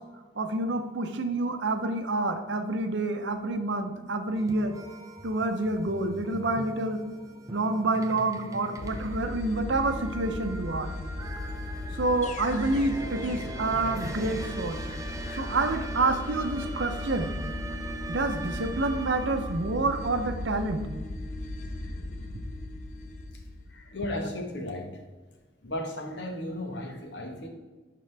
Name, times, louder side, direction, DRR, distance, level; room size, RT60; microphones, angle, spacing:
voice 1, 0.4-4.8 5.2-7.0 7.5-10.9 11.9-14.8 15.3-17.3 18.1-20.9, right 2 dB, 75° right, 7 dB, 0.7 m, -28 dB
sound 1, 4.3-19.7, right 2 dB, 15° right, 0.4 m, -41 dB
sound 2, 8.8-24.1, left 2 dB, 40° left, 0.6 m, -37 dB
voice 2, 23.7-25.0 25.6-27.5, left 1 dB, 70° left, 3 dB, 1.2 m, -35 dB
11.0 x 3.8 x 3.3 m, 1.3 s
head